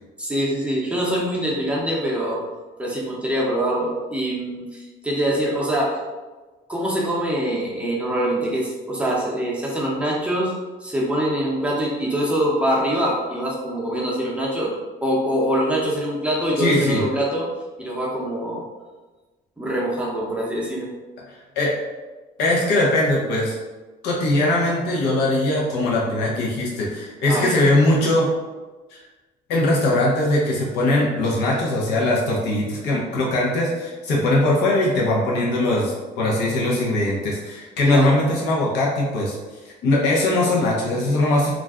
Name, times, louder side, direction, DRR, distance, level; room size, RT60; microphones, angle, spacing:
voice 1, 0.2-2.4 2.8-6.0 6.7-10.5 10.8-14.7 15.0-17.5 17.8-18.6 19.6-20.9 27.3-27.6 37.8-38.2, right 1 dB, 5° right, -4 dB, 0.6 m, -24 dB
voice 2, 16.6-17.0 21.6-21.7 22.4-23.5 24.0-28.3 28.9-29.0 29.5-39.4 39.8-41.5, left 1 dB, 90° left, -4 dB, 0.7 m, -20 dB
2.4 x 2.1 x 3.5 m, 1.2 s
cardioid pair, 110°, 17 cm